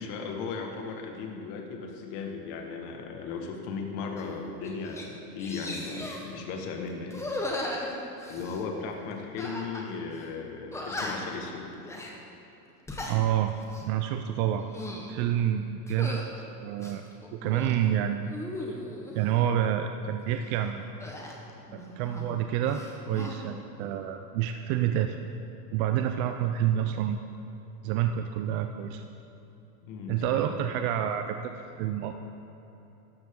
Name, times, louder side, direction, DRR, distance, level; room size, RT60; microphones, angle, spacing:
voice 1, 0.0-7.2 8.2-11.7 29.8-30.6, left 4 dB, 50° left, 2 dB, 1.9 m, -36 dB
sound 1, 4.2-4.3 4.6-5.1 5.4-6.3 7.1-8.6 9.4-9.9 10.2-10.3 10.7-11.4 11.8-12.1 12.7-13.2 13.6-13.9 14.5-15.1 15.9-16.3 16.8-17.8 18.3-19.2 21.0-22.4 22.7-23.4, left 1 dB, 5° left, 1.2 m, -37 dB
voice 2, 13.1-13.6 13.8-14.7 15.1-17.0 17.3-18.3 18.7-18.8 19.1-20.9 21.7-25.2 25.7-27.2 27.8-29.1 30.1-32.1, right 10 dB, 45° right, 6 dB, 0.6 m, -28 dB
14.0 x 12.0 x 3.8 m, 3.0 s
supercardioid pair, 140°, 47 cm